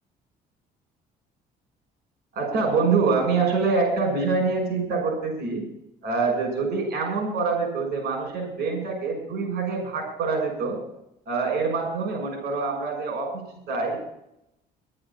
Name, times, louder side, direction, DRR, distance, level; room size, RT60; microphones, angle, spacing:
voice 1, 2.3-5.6 6.0-10.8 11.3-14.0, right 4 dB, 70° right, 3 dB, 6.4 m, -25 dB
11.5 x 8.7 x 8.6 m, 0.80 s
cardioid pair, 110°, 17 cm